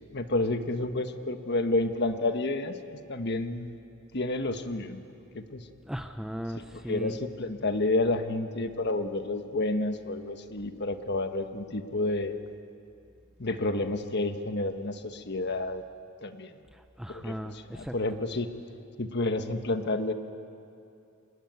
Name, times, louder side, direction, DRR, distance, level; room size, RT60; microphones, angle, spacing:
voice 1, 0.1-2.7 3.1-3.7 4.1-5.0 5.3-5.6 6.6-12.3 13.4-15.8 16.2-16.5 17.1-17.3 17.7-18.5 19.0-20.1, left 2 dB, 55° left, 8 dB, 1.4 m, -30 dB
voice 2, 5.8-7.2 16.7-17.9, equal, 5° right, 7 dB, 0.6 m, -37 dB
25.5 x 20.5 x 9.5 m, 2.7 s
head